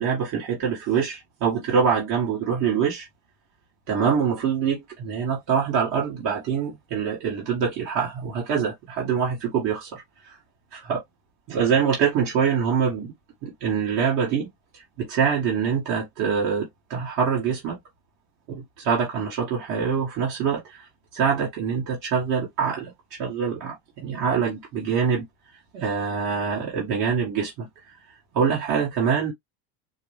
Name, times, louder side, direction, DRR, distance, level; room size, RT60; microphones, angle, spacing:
voice 1, 0.0-3.1 3.9-10.4 10.7-11.0 11.5-13.1 13.4-14.5 15.0-17.8 18.5-20.9 21.1-25.3 25.7-27.7 28.3-29.3, right 6 dB, 50° right, 1.7 m, -25 dB
4.8 x 2.2 x 3.2 m
cardioid pair, 170°, 41 cm